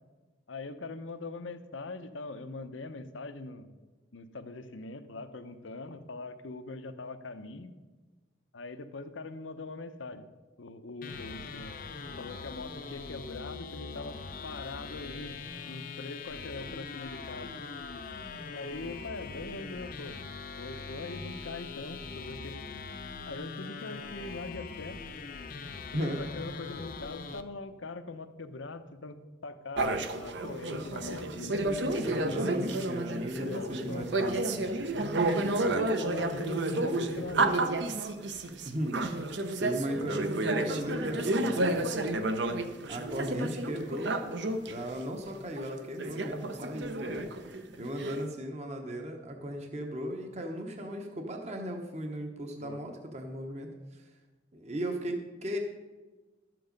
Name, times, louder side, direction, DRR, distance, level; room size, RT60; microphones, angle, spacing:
voice 1, 0.5-3.8 4.1-7.7 8.5-10.2 10.6-11.7 12.2-15.4 15.6-17.6 18.5-20.2 20.6-22.6 23.3-25.0 25.9-31.8 33.4-34.1 35.3-37.9 38.5-38.6 52.6-52.8, left 3 dB, 85° left, 10 dB, 0.8 m, -42 dB
sound 1, 11.0-27.4, left 4 dB, 45° left, 0.6 m, -42 dB
voice 2, 25.9-26.3 32.0-34.7 38.6-39.0 39.6-41.7 42.9-44.3 44.6-47.2 47.8-54.1 54.5-55.6, equal, 35° right, 3 dB, 1.0 m, -36 dB
sound 2, 29.8-44.7 45.3-45.4 45.6-48.2, right 2 dB, 65° right, 0.8 m, -31 dB
12.5 x 7.7 x 5.2 m, 1.3 s
head